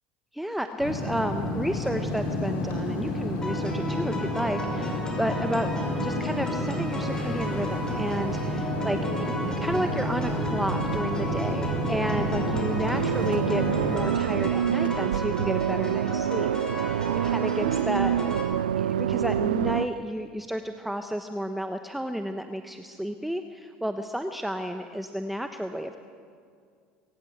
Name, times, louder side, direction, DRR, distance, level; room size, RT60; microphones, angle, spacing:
voice 1, 0.3-5.7 6.0-13.6 13.9-16.5 16.9-18.1 18.8-26.0, equal, 5° right, 7 dB, 1.1 m, -31 dB
sound 1, 0.8-14.0, left 1 dB, 65° left, 5.8 m, -30 dB
sound 2, 3.4-18.4, equal, 15° left, 4.9 m, -36 dB
sound 3, 5.7-19.9, right 10 dB, 90° right, 0.4 m, -29 dB
22.0 x 17.5 x 8.0 m, 2.2 s
hypercardioid pair, 80°, 5 cm